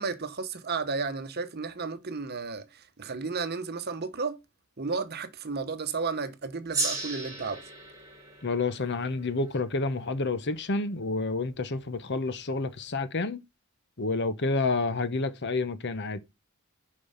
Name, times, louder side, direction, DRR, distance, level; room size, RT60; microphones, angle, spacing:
voice 1, 0.0-4.4 4.8-7.6, right 4 dB, 45° right, 1.0 m, -33 dB
Gong, 6.7-11.5, right 2 dB, 15° right, 3.5 m, -36 dB
voice 2, 8.4-13.4 14.0-16.2, left 3 dB, 50° left, 0.9 m, -29 dB
6.9 x 5.4 x 5.5 m
head